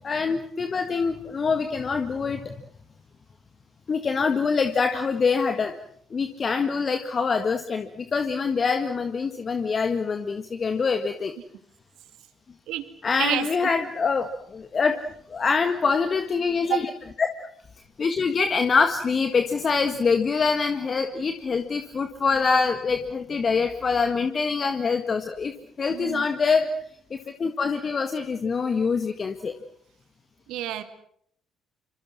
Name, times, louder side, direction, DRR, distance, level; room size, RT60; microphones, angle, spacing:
voice 1, 0.0-2.6 3.9-5.7 6.1-11.3 13.0-15.0 15.3-16.9 17.2-17.5 18.0-25.5 25.8-26.7 27.1-29.5, left 5 dB, 35° left, 7 dB, 1.8 m, -25 dB
voice 2, 13.2-13.7 16.7-16.8 25.9-26.3 30.5-30.8, right 13 dB, 60° right, 10 dB, 2.4 m, -28 dB
27.5 x 26.0 x 6.2 m, 0.66 s
figure-of-eight pair, 50°, 0 cm